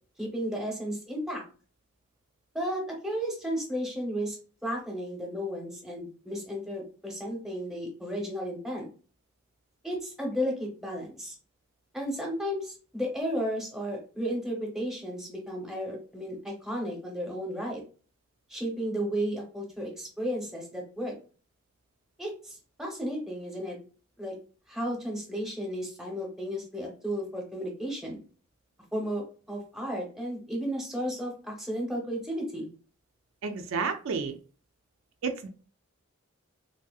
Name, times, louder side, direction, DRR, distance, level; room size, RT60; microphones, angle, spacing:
voice 1, 0.2-1.4 2.5-4.4 4.6-8.9 9.8-11.3 11.9-17.8 18.5-21.1 22.2-23.8 24.2-24.3 24.7-28.2 28.9-29.2 29.5-32.7, equal, ahead, 0.9 m, -33 dB
voice 2, 33.4-34.4 35.2-35.5, right 5 dB, 80° right, 0.4 m, -31 dB
3.3 x 2.7 x 2.3 m
head